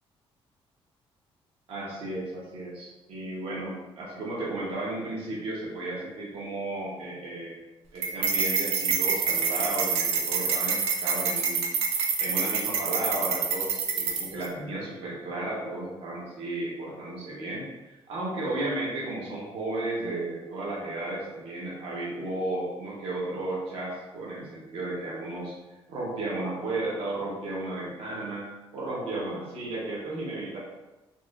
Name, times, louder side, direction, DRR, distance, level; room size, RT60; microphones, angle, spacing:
voice 1, 1.7-7.6 7.9-11.6 12.2-25.5 25.9-30.6, right 2 dB, 70° right, -5 dB, 0.9 m, -34 dB
sound 1, 8.0-14.5, right 6 dB, 90° right, 0.5 m, -27 dB
4.0 x 2.9 x 2.3 m, 1.1 s
cardioid pair, 165°, 10 cm